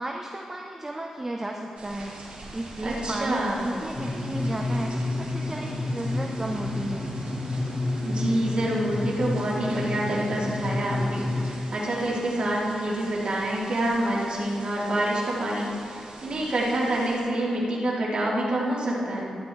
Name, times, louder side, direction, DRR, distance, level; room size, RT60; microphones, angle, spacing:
voice 1, 0.0-7.1, right 1 dB, 20° right, 1 dB, 0.9 m, -34 dB
sound 1, 1.8-17.2, right 2 dB, 75° right, 2.7 m, -44 dB
voice 2, 2.8-3.7 8.0-19.4, right 1 dB, 55° right, -6 dB, 3.2 m, -27 dB
sound 2, 3.9-11.5, left 2 dB, 40° left, 1.6 m, -30 dB
12.5 x 12.0 x 3.3 m, 2.4 s
cardioid pair, 60°, 2 cm